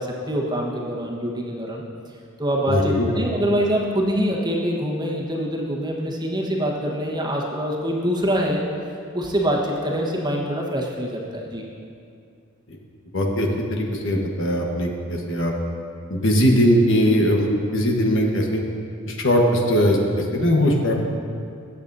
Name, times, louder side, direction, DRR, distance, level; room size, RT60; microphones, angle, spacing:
voice 1, 0.0-1.8 2.4-8.6 9.1-11.6, equal, 20° right, -2 dB, 1.3 m, -24 dB
voice 2, 2.7-3.1 13.1-15.5 16.1-18.6 19.1-20.9, equal, 65° left, 0 dB, 1.3 m, -20 dB
19.5 x 8.2 x 2.7 m, 2.4 s
head